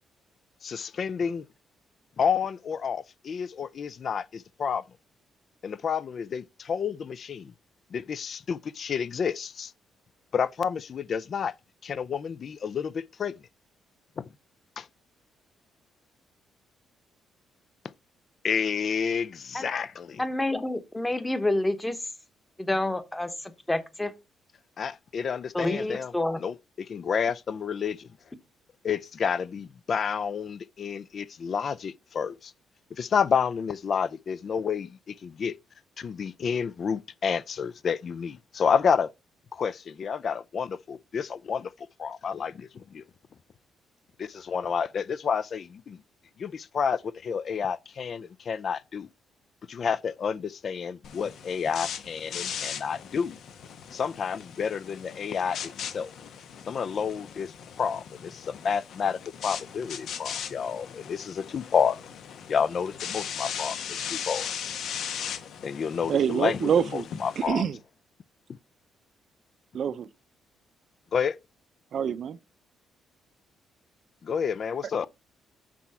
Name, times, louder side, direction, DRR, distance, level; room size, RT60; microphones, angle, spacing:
voice 1, 0.6-1.4 2.2-4.8 5.6-7.5 7.9-9.7 10.3-11.5 11.8-13.3 14.2-14.3 14.8-14.9 18.4-20.2 24.8-26.1 26.4-28.1 28.8-32.5 32.9-35.5 36.0-39.1 39.5-41.7 42.0-43.0 44.2-46.0 46.4-49.1 49.7-53.4 53.9-56.1 56.7-62.0 62.5-64.5 65.6-67.6 71.1-71.4 74.2-75.1, left 6 dB, 50° left, 0.4 m, -30 dB
voice 2, 20.2-22.0 22.6-24.1 25.5-26.4, left 1 dB, 10° left, 1.1 m, -28 dB
sound 1, 51.0-67.5, left 8 dB, 70° left, 1.0 m, -38 dB
voice 3, 66.1-67.0 67.4-67.8 69.7-70.1 71.9-72.4, right 8 dB, 60° right, 0.5 m, -26 dB
6.1 x 4.2 x 5.7 m
cardioid pair, 90°, 0 cm